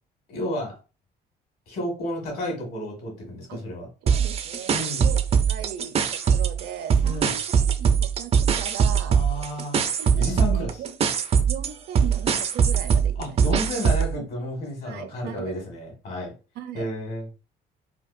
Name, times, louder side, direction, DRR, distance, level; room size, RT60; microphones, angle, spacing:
voice 1, 0.3-0.8 1.7-3.9 4.7-5.1 7.0-7.3 9.1-9.9 10.2-10.8 13.2-16.3 16.7-17.3, left 1 dB, 65° left, 1 dB, 2.0 m, -31 dB
voice 2, 4.0-9.2 10.0-11.0 11.5-13.4 14.8-15.5 16.6-16.9, right 9 dB, 70° right, 9 dB, 0.7 m, -38 dB
sound 1, 4.1-6.6 6.9-14.1, right 7 dB, 35° right, 0.5 m, -22 dB
4.5 x 2.4 x 2.6 m, 0.31 s
cardioid pair, 110°, 17 cm